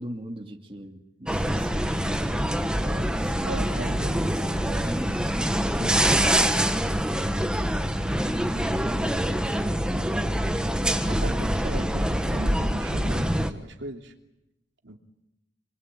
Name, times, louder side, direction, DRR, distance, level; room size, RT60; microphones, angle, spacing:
voice 1, 0.0-5.3 6.1-6.9, right 1 dB, 30° right, 3 dB, 2.4 m, -41 dB
sound 1, 1.3-13.5, equal, 5° right, 1.6 m, -25 dB
voice 2, 3.4-4.2 5.8-6.2 11.0-14.1 14.8-15.0, right 2 dB, 70° right, 4 dB, 3.1 m, -38 dB
28.5 x 23.0 x 9.0 m, 0.87 s
head